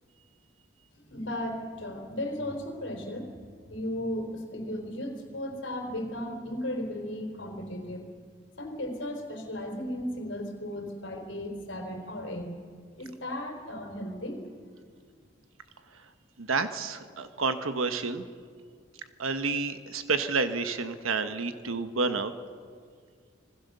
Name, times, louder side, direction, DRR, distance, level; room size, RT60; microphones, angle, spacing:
voice 1, 1.0-3.3 3.7-8.1 8.6-12.5 13.0-14.4, left 1 dB, 65° left, 3 dB, 4.0 m, -35 dB
voice 2, 16.4-18.2 19.2-22.3, right 4 dB, 90° right, 9 dB, 1.3 m, -29 dB
26.5 x 20.0 x 6.8 m, 2.1 s
head